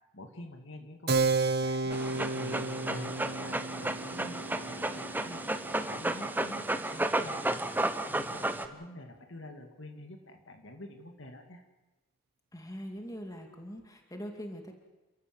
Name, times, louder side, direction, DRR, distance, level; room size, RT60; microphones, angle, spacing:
voice 1, 0.1-1.8 2.3-5.4 5.8-11.6, left 1 dB, 60° left, 5 dB, 2.2 m, -47 dB
Keyboard (musical), 1.1-7.2, right 3 dB, 45° right, 1.1 m, -33 dB
Dog, 1.9-8.7, right 1 dB, 10° right, 0.9 m, -33 dB
voice 2, 12.5-14.8, equal, 15° left, 4 dB, 2.4 m, -42 dB
29.5 x 14.0 x 7.7 m, 1.1 s
head